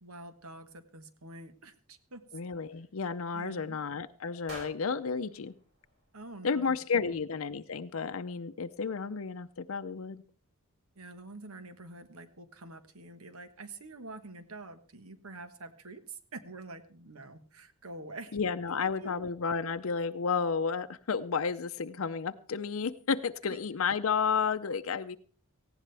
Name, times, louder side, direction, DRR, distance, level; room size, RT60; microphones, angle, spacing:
voice 1, 0.0-2.2 3.3-3.8 6.1-7.2 11.0-18.4 18.7-19.3 23.5-23.6, right 2 dB, 80° right, 10 dB, 1.4 m, -47 dB
voice 2, 2.3-5.5 6.4-10.2 18.3-25.2, left 5 dB, 70° left, 8 dB, 0.6 m, -32 dB
sound 1, 4.5-6.6, right 2 dB, 60° right, 6.0 m, -50 dB
18.5 x 15.5 x 3.4 m, 0.42 s
head